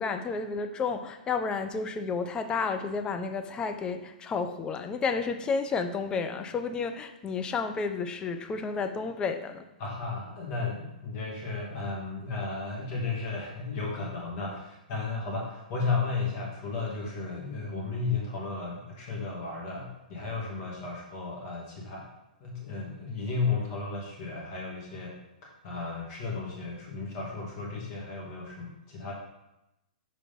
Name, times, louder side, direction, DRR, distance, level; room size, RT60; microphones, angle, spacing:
voice 1, 0.0-9.7, left 5 dB, 20° left, 8 dB, 0.5 m, -31 dB
voice 2, 9.8-22.1 22.4-25.1 25.4-29.1, left 4 dB, 40° left, -3 dB, 2.8 m, -34 dB
5.9 x 4.8 x 5.5 m, 0.91 s
hypercardioid pair, 120°, 5 cm